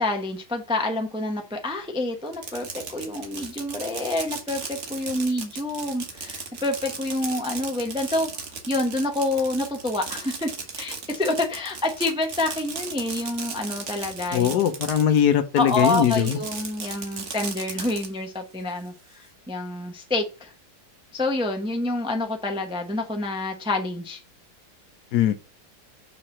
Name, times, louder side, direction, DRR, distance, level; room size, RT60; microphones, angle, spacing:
voice 1, 0.0-8.3 8.7-10.5 10.8-14.6 15.6-20.5 21.1-24.2, left 2 dB, 5° right, 0.5 m, -27 dB
Fireworks, 2.3-15.2 15.6-18.1, right 5 dB, 45° right, 1.3 m, -36 dB
voice 2, 14.3-16.4 25.1-25.3, left 9 dB, 70° left, 1.2 m, -21 dB
6.0 x 4.7 x 4.2 m
omnidirectional pair, 1.9 m